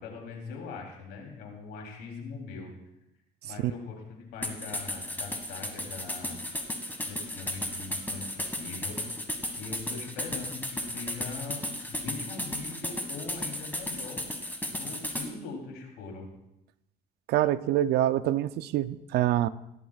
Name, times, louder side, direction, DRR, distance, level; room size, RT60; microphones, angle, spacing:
voice 1, 0.0-2.7 3.4-6.4 7.0-9.0 9.6-14.3 14.7-16.3, left 4 dB, 90° left, 0 dB, 3.3 m, -41 dB
sound 1, 4.4-15.3, left 1 dB, 10° left, 1.8 m, -34 dB
voice 2, 17.3-19.5, right 13 dB, 75° right, 15 dB, 0.5 m, -25 dB
18.0 x 13.0 x 2.4 m, 0.86 s
cardioid pair, 110°, 17 cm